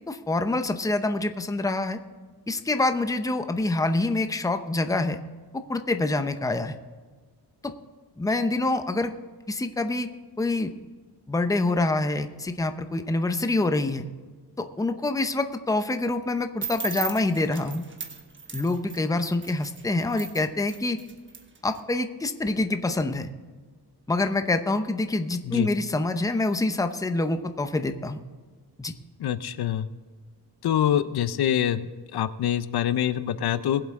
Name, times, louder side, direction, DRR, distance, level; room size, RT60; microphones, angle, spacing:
voice 1, 0.0-2.0 2.5-5.2 5.5-6.7 7.6-7.7 8.2-9.1 9.5-10.1 10.4-10.7 11.3-14.1 14.6-17.8 18.5-21.0 21.6-23.3 24.1-28.2 28.8-28.9, left 2 dB, 10° left, 8 dB, 0.7 m, -26 dB
sound 1, 16.6-21.8, right 4 dB, 30° right, 1.3 m, -37 dB
voice 2, 29.2-29.9 30.6-33.8, left 10 dB, 65° left, 13 dB, 0.7 m, -25 dB
21.5 x 7.8 x 3.7 m, 1.5 s
wide cardioid pair, 135°, 41 cm